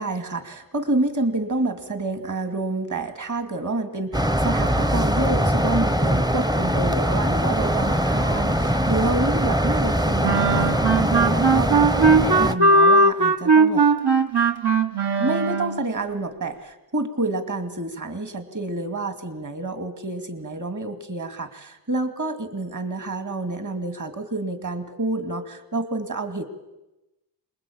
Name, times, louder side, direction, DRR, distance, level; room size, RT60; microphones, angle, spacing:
voice 1, 0.0-11.8 12.2-13.9 15.2-26.4, right 2 dB, 45° right, 8 dB, 2.5 m, -28 dB
sound 1, 4.1-12.5, equal, 10° right, 0.9 m, -22 dB
sound 2, 10.2-15.9, right 3 dB, 65° right, 1.8 m, -18 dB
27.0 x 21.0 x 8.7 m, 0.98 s
wide cardioid pair, 85°, 42 cm